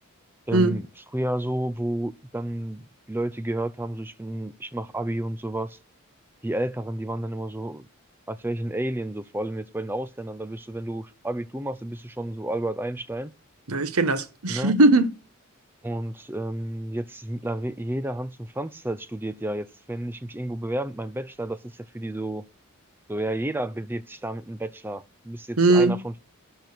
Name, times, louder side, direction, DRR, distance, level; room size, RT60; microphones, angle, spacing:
voice 1, 0.5-0.9 1.1-5.8 6.4-7.9 8.3-13.3 14.5-14.8 15.8-22.4 23.1-26.2, right 1 dB, 10° right, 0.5 m, -31 dB
voice 2, 13.7-15.1 25.6-26.0, right 2 dB, 80° right, 1.2 m, -19 dB
12.5 x 4.4 x 6.7 m
head